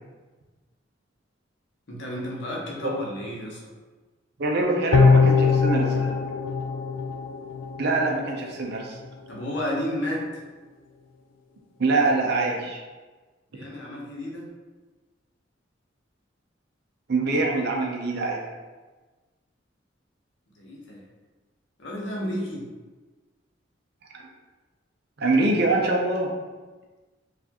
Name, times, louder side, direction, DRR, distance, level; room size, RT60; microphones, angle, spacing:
voice 1, 1.9-3.7 9.3-10.4 13.5-14.5 20.6-21.0 21.8-22.7, left 1 dB, 65° left, -3 dB, 0.8 m, -32 dB
voice 2, 4.4-6.1 7.8-9.0 11.8-12.8 17.1-18.4 24.1-24.2 25.2-26.3, right 2 dB, 55° right, 0 dB, 0.5 m, -24 dB
sound 1, 4.9-8.3 8.6-8.7, left 5 dB, 80° left, 0.4 m, -21 dB
4.2 x 2.4 x 2.9 m, 1.3 s
head